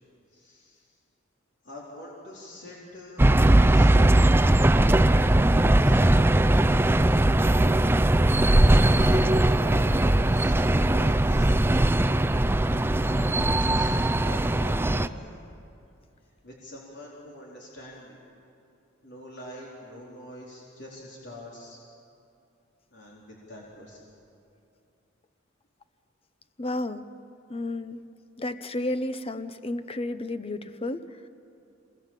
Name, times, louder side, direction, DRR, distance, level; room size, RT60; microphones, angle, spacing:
voice 1, 0.3-0.9 1.6-4.3 4.9-6.0 7.5-11.8 13.0-15.3 16.4-18.2 19.0-21.8 22.9-24.0, left 1 dB, 60° left, -4 dB, 4.1 m, -44 dB
sound 1, 3.2-15.1, right 1 dB, 10° right, 0.5 m, -20 dB
voice 2, 26.6-27.1 27.5-28.0 28.4-31.1, left 2 dB, 30° left, 11 dB, 0.8 m, -32 dB
27.0 x 20.0 x 7.5 m, 2.6 s
head